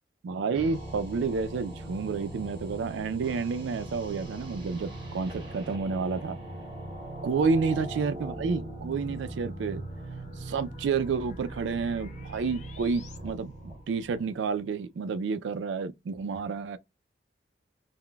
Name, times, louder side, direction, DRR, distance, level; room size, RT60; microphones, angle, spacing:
voice 1, 0.2-6.4 7.2-9.8 10.4-16.8, right 5 dB, 90° right, 0.3 m, -30 dB
sound 1, 0.5-14.6, right 2 dB, 25° right, 0.9 m, -41 dB
sound 2, 1.2-13.2, left 2 dB, 40° left, 0.4 m, -49 dB
2.2 x 2.1 x 3.7 m
head